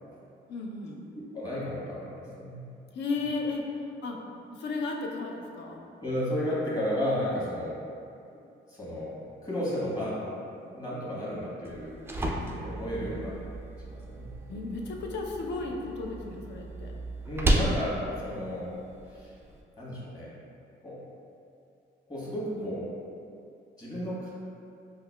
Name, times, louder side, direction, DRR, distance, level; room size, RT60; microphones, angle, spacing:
voice 1, 0.5-1.1 2.9-4.2 4.5-5.8 12.9-13.3 14.5-16.9 22.5-22.7, left 3 dB, 65° left, 0 dB, 0.5 m, -34 dB
voice 2, 1.3-2.6 6.0-7.8 8.7-9.2 9.4-10.2 10.7-11.9 12.4-13.3 13.8-14.3 17.3-18.7 19.1-19.3 19.8-20.3 20.8-21.0 22.1-22.9 23.8-24.3, equal, 20° left, -8 dB, 1.3 m, -33 dB
sound 1, 11.6-19.6, right 1 dB, 10° right, 0.3 m, -33 dB
5.3 x 2.3 x 2.2 m, 2.5 s
cardioid pair, 90°, 20 cm